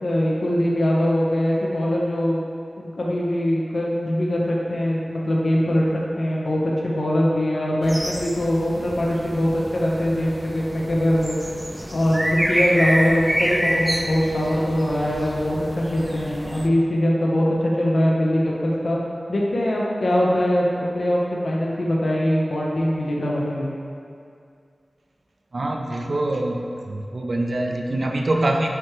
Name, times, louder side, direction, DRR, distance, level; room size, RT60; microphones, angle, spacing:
voice 1, 0.0-2.4 2.8-5.8 6.2-11.4 11.9-19.0 19.3-23.7, equal, 70° left, -4 dB, 0.9 m, -22 dB
sound 1, 7.8-16.7, equal, 10° right, 0.4 m, -28 dB
voice 2, 25.5-26.6 26.9-28.7, right 1 dB, 60° right, 1 dB, 0.6 m, -24 dB
9.3 x 3.3 x 3.1 m, 2.4 s
wide cardioid pair, 90°, 0 cm